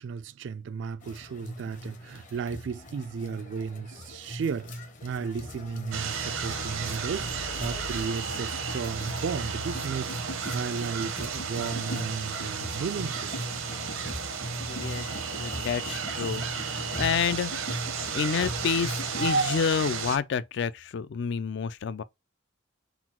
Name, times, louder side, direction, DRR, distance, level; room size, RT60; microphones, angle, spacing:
voice 1, 0.0-13.3, right 6 dB, 60° right, 0.3 m, -34 dB
sound 1, 1.0-19.3, equal, 40° left, 0.8 m, -39 dB
sound 2, 4.1-10.9, left 2 dB, 85° left, 1.2 m, -47 dB
sound 3, 5.9-20.2, right 5 dB, 85° right, 0.8 m, -33 dB
voice 2, 14.7-15.1 15.4-17.5 18.1-22.0, left 6 dB, 55° left, 0.4 m, -29 dB
4.0 x 2.3 x 4.2 m
head